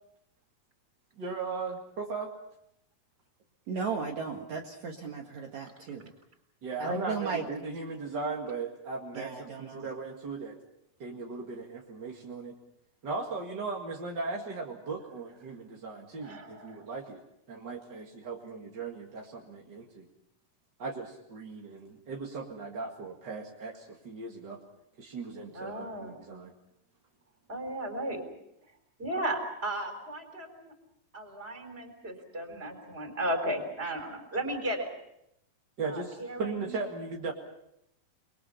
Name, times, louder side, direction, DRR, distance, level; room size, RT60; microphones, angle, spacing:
voice 1, 1.2-2.3 6.6-10.6 11.0-12.5 13.0-17.2 17.5-20.1 20.8-24.6 25.0-26.5 35.8-37.3, right 4 dB, 35° right, -1 dB, 2.1 m, -37 dB
voice 2, 3.7-6.1 6.8-7.5 9.1-9.8, right 5 dB, 55° right, 1 dB, 2.7 m, -35 dB
voice 3, 16.2-16.9 25.5-26.1 27.5-28.2 29.0-30.7 31.1-34.9 35.8-36.7, right 1 dB, 15° right, 5 dB, 4.0 m, -35 dB
30.0 x 22.5 x 5.7 m, 0.79 s
omnidirectional pair, 4.3 m